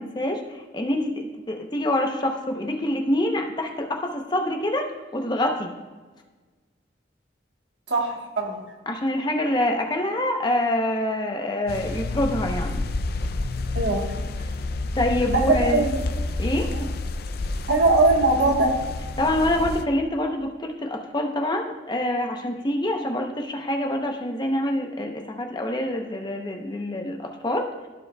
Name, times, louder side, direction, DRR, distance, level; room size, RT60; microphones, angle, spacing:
voice 1, 0.0-5.7 8.9-12.8 14.9-15.8 16.4-16.7 19.2-27.7, left 1 dB, 25° left, 3 dB, 0.8 m, -26 dB
voice 2, 7.9-8.6 13.7-14.1 15.3-16.0 16.7-16.9 17.7-18.7, right 2 dB, 85° right, 1 dB, 1.4 m, -21 dB
sound 1, 11.7-19.8, left 2 dB, 60° left, 0.4 m, -29 dB
15.0 x 5.2 x 2.3 m, 1.3 s
head